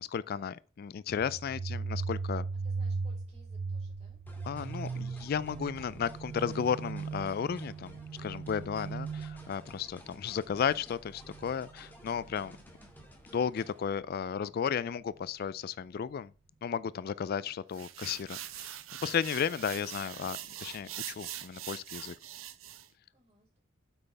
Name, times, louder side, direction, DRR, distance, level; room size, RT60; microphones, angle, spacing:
voice 1, 0.0-2.4 4.5-12.6 13.3-16.3 16.6-22.1, left 7 dB, 50° left, 0.3 m, -34 dB
sound 1, 1.1-12.6, right 4 dB, 60° right, 0.4 m, -38 dB
voice 2, 2.6-4.2 23.1-23.6, right 1 dB, 35° right, 4.7 m, -63 dB
sound 2, 4.3-13.9, left 1 dB, 10° left, 2.1 m, -55 dB
sound 3, 17.7-22.9, right 12 dB, 85° right, 0.7 m, -43 dB
9.0 x 8.0 x 3.4 m
head